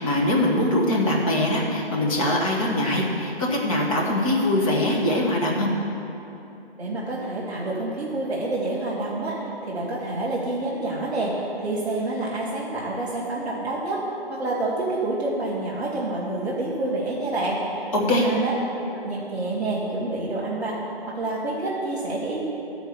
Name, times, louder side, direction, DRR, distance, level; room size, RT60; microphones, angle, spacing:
voice 1, 0.0-5.7 17.9-18.3, left 1 dB, 35° left, -2 dB, 1.5 m, -22 dB
voice 2, 6.8-14.0 14.3-18.5 18.9-22.4, right 2 dB, ahead, -17 dB, 0.6 m, -28 dB
11.5 x 4.6 x 6.8 m, 2.9 s
figure-of-eight pair, 155°, 31 cm